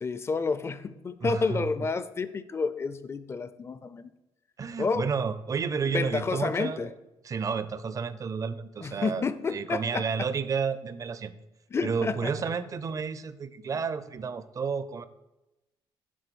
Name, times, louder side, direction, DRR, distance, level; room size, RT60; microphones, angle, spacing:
voice 1, 0.0-4.1 4.8-5.1 5.9-6.9 8.8-10.1 11.7-12.3, left 4 dB, 25° left, 14 dB, 0.5 m, -30 dB
voice 2, 1.2-1.7 4.6-6.9 7.2-11.3 11.8-15.1, right 5 dB, 35° right, 13 dB, 0.5 m, -31 dB
10.0 x 3.9 x 6.9 m, 0.97 s
cardioid pair, 135°, 10 cm